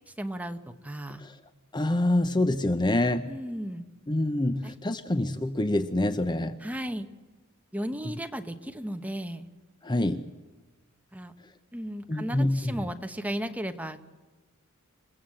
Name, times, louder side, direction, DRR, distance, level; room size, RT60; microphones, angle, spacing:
voice 1, 0.2-1.2 3.3-3.9 4.6-4.7 6.6-7.1 7.7-9.5 11.1-11.3 11.7-14.0, equal, 5° right, 7 dB, 1.1 m, -35 dB
voice 2, 1.7-3.3 4.1-6.6 9.8-10.3 12.1-12.8, left 1 dB, 20° left, 10 dB, 0.7 m, -26 dB
28.5 x 16.5 x 7.7 m, 1.2 s
head